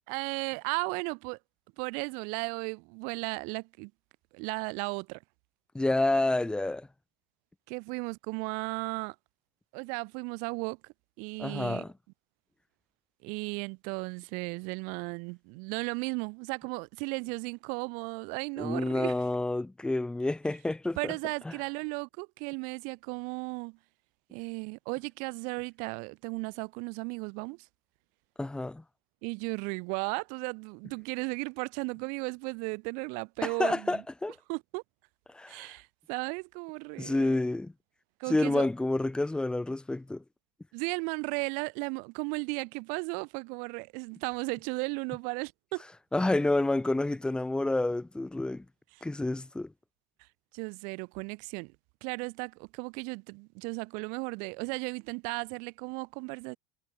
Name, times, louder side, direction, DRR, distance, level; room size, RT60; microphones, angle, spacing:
voice 1, 0.1-1.4 1.8-3.9 4.3-5.2 7.7-9.2 9.7-11.9 13.2-19.1 21.0-23.8 24.3-27.7 29.2-34.0 34.5-34.8 35.5-37.4 38.2-38.7 40.7-45.8 49.0-49.1 50.2-50.3 50.5-51.7 52.0-56.6, right 35 dB, 55° right, 3.3 m, -35 dB
voice 2, 5.7-6.9 11.4-11.9 18.6-21.1 21.4-21.5 28.4-28.8 33.4-34.3 35.3-35.7 37.0-37.7 38.3-40.2 46.1-48.6 49.0-49.7, left 2 dB, 5° left, 2.7 m, -29 dB
supercardioid pair, 160°, 16 cm